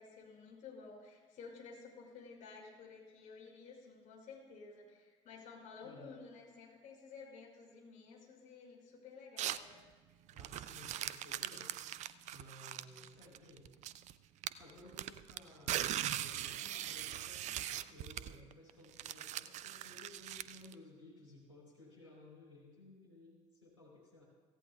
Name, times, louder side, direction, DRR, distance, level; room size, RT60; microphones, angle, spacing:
voice 1, 0.0-9.8, left 4 dB, 55° left, -2 dB, 5.4 m, -53 dB
voice 2, 5.8-6.1 10.3-11.8 12.3-13.7 14.6-24.2, left 2 dB, 90° left, -7 dB, 3.6 m, -57 dB
sound 1, 9.4-9.7 10.3-14.1 14.4-20.7, right 12 dB, 50° right, 0.5 m, -40 dB
25.0 x 16.0 x 2.3 m, 1.3 s
figure-of-eight pair, 50°, 16 cm